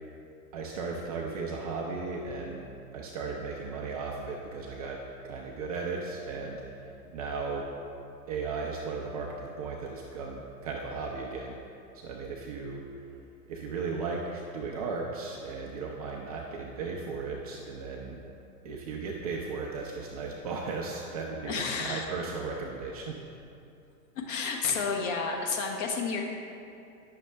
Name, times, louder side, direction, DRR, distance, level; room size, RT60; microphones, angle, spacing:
voice 1, 0.5-2.6 2.9-7.7 8.3-11.6 11.9-12.8 13.5-18.2 18.6-23.2, right 4 dB, 25° right, -1 dB, 0.4 m, -36 dB
voice 2, 21.4-22.0 24.1-26.2, left 5 dB, 50° left, 1 dB, 1.3 m, -31 dB
9.4 x 6.5 x 3.3 m, 2.6 s
hypercardioid pair, 115°, 49 cm